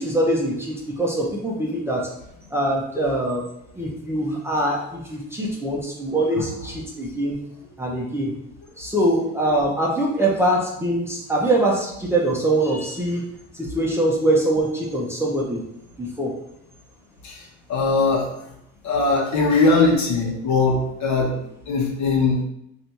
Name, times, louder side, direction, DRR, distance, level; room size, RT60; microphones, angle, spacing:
voice 1, 0.0-2.1 2.5-3.4 3.8-7.4 7.8-8.3 8.8-13.2 13.5-15.6 16.0-16.3 20.6-20.8, right 1 dB, 5° right, -3 dB, 0.7 m, -23 dB
voice 2, 17.7-18.3 18.8-21.4 21.7-22.4, left 3 dB, 55° left, -1 dB, 1.1 m, -20 dB
3.3 x 2.7 x 4.3 m, 0.78 s
cardioid pair, 115°, 33 cm